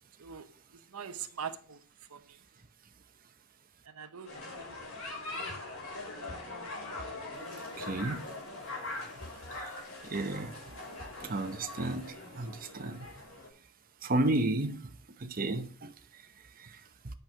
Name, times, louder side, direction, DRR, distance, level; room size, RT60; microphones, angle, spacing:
voice 1, 0.9-1.8 2.1-2.2 3.9-4.3 7.3-8.0, right 7 dB, 80° right, 0.9 m, -42 dB
sound 1, 4.2-13.5, left 2 dB, 60° left, 5.6 m, -42 dB
voice 2, 7.8-8.2 10.0-10.6 11.2-13.1 14.0-14.9 15.2-16.2 16.6-16.8, right 2 dB, 40° right, 0.9 m, -33 dB
9.1 x 6.2 x 6.0 m
head